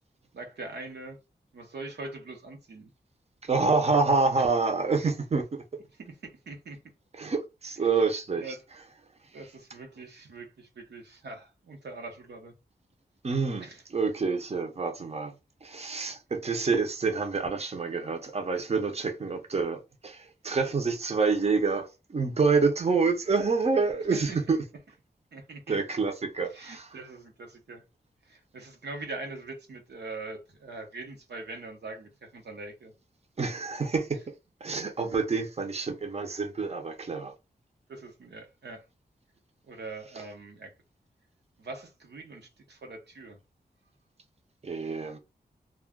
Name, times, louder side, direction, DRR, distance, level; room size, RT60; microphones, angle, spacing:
voice 1, 0.3-1.2 1.5-2.9 5.9-6.8 8.0-8.1 8.3-8.6 9.3-12.5 13.6-13.8 24.1-24.4 25.3-25.8 26.4-27.8 28.3-32.9 37.9-38.8 39.6-40.7 41.6-43.4, right 3 dB, 90° right, 0.8 m, -42 dB
voice 2, 3.4-5.6 7.2-8.4 13.2-13.7 13.9-15.3 15.6-24.6 25.7-26.9 33.4-34.2 34.6-37.3 44.6-45.2, right 4 dB, 40° right, 0.6 m, -27 dB
2.3 x 2.1 x 3.6 m
wide cardioid pair, 90°, 17 cm